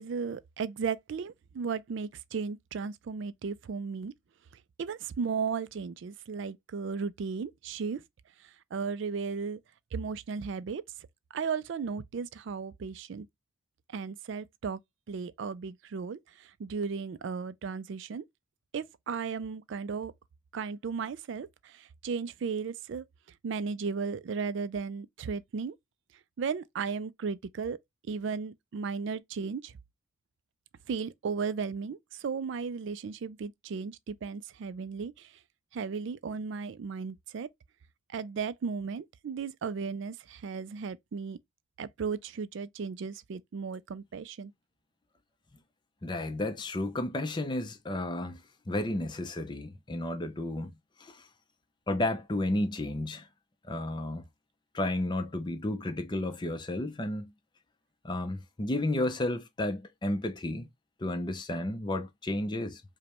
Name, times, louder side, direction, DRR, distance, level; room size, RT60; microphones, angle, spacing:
voice 1, 0.0-4.1 4.8-8.0 8.7-9.6 9.9-10.8 11.3-13.3 13.9-14.8 15.1-18.2 18.7-20.1 20.5-23.0 23.4-25.7 26.4-27.8 28.1-29.7 30.9-35.3 35.7-37.5 38.1-41.4 41.8-44.5, right 5 dB, 60° right, 0.3 m, -35 dB
voice 2, 46.0-48.4 48.7-50.7 51.0-51.2 51.9-53.3 53.7-54.2 54.7-57.3 58.0-60.7 61.0-62.8, left 1 dB, 20° left, 0.5 m, -32 dB
5.0 x 2.1 x 2.9 m
head